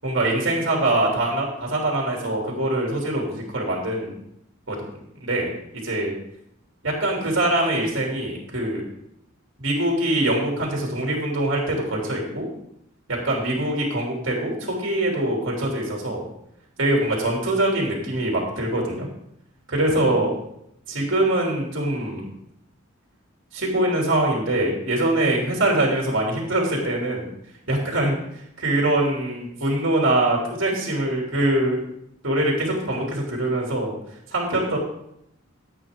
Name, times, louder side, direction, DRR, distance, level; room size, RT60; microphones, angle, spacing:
voice 1, 0.0-4.1 4.7-4.8 5.2-5.5 5.8-6.1 6.8-8.8 9.6-12.5 13.1-16.2 16.8-19.1 19.7-20.3 20.9-22.3 23.5-27.3 27.7-28.2 28.6-31.8 32.2-33.9 34.3-34.8, right 1 dB, 65° right, -1 dB, 2.9 m, -23 dB
13.5 x 8.4 x 3.7 m, 0.75 s
head